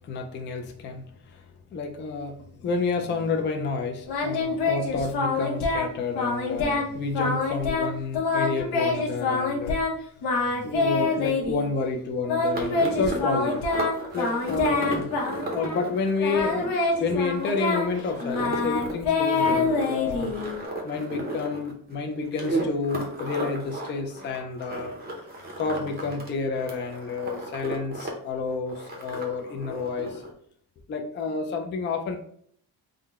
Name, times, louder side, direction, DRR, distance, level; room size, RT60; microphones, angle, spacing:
voice 1, 0.0-1.4 1.7-9.8 10.3-13.6 14.1-20.3 20.8-24.9 25.6-30.2 30.9-32.2, left 4 dB, 30° left, 3 dB, 0.4 m, -30 dB
Singing, 4.1-5.9 6.2-6.9 7.1-9.9 10.2-11.7 12.3-15.9 16.2-20.6, left 3 dB, 75° left, 1.0 m, -26 dB
sound 1, 12.5-26.3 26.6-28.1 28.4-30.3, right 2 dB, 25° right, 0.6 m, -35 dB
3.7 x 2.1 x 3.5 m, 0.63 s
cardioid pair, 170°, 39 cm